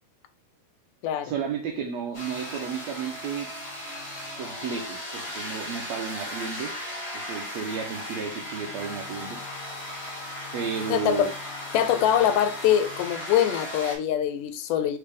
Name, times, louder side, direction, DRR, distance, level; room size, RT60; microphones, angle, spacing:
voice 1, 1.2-3.5 4.4-6.7 7.1-9.4 10.5-11.3, right 6 dB, 80° right, 1.6 m, -32 dB
sound 1, 2.1-14.0, left 1 dB, 25° left, 1.4 m, -36 dB
voice 2, 10.9-11.3 11.7-15.0, left 10 dB, 85° left, 2.0 m, -23 dB
4.7 x 3.3 x 3.3 m
omnidirectional pair, 3.7 m